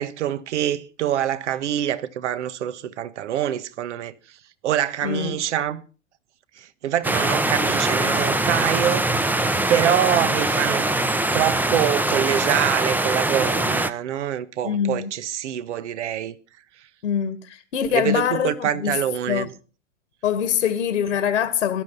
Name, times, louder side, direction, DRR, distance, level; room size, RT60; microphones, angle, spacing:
voice 1, 0.0-4.1 4.6-5.8 6.6-9.1 9.7-10.9 11.3-16.3 17.9-19.5, right 10 dB, 65° right, 1.5 m, -25 dB
voice 2, 5.0-5.4 14.6-15.1 17.0-19.0 19.3-19.5 20.2-21.8, left 8 dB, 70° left, 1.9 m, -24 dB
sound 1, 7.0-13.9, right 2 dB, 5° right, 0.9 m, -22 dB
17.5 x 12.0 x 5.6 m
figure-of-eight pair, 100°, 38 cm